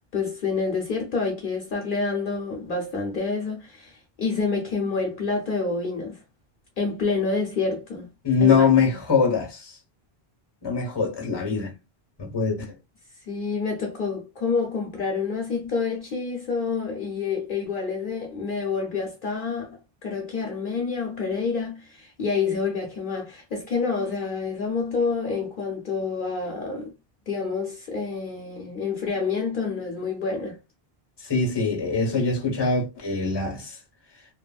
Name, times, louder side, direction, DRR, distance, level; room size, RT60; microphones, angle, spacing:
voice 1, 0.1-6.2 6.8-8.1 8.4-8.7 13.3-26.9 27.3-30.6, left 4 dB, 60° left, 0.8 m, -28 dB
voice 2, 8.2-9.8 10.6-11.7 12.2-12.6 31.2-33.8, left 5 dB, 25° left, 0.8 m, -23 dB
2.9 x 2.5 x 2.2 m
omnidirectional pair, 1.0 m